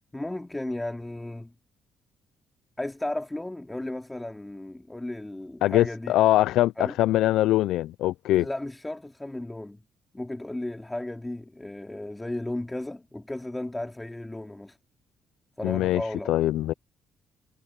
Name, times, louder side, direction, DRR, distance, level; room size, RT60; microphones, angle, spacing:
voice 1, 0.1-1.5 2.8-6.1 6.8-7.0 8.3-9.8 10.1-14.8 15.6-16.3, left 1 dB, 10° left, 2.6 m, -34 dB
voice 2, 5.6-6.7 7.0-8.5 15.6-16.0 16.3-16.7, left 15 dB, 90° left, 0.3 m, -22 dB
cardioid pair, 90°, 0 cm